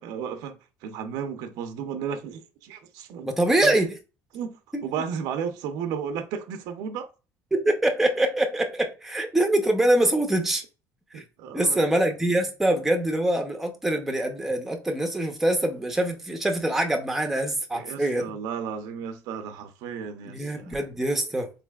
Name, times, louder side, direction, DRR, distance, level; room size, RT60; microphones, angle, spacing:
voice 1, 0.0-0.6 0.8-3.3 3.6-3.7 4.3-4.6 4.8-7.1 11.1-11.9 17.7-21.0, right 7 dB, 85° right, 0.6 m, -34 dB
voice 2, 3.2-3.9 4.7-4.8 7.5-10.6 11.1-11.2 11.5-18.4 20.3-21.5, right 1 dB, 5° right, 0.6 m, -24 dB
4.0 x 3.2 x 2.3 m
cardioid pair, 150°, 6 cm